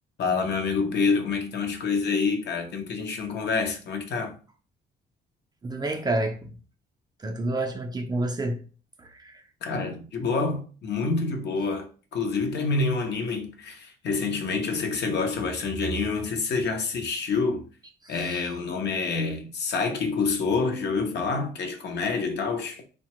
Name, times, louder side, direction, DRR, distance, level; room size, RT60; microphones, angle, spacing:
voice 1, 0.2-4.3 9.6-17.7 18.1-22.8, left 4 dB, 60° left, 0.6 m, -27 dB
voice 2, 5.6-6.5 7.2-8.6 9.0-9.4 18.0-18.4, right 2 dB, 20° right, 0.4 m, -29 dB
2.8 x 2.1 x 2.9 m
cardioid pair, 90°, 20 cm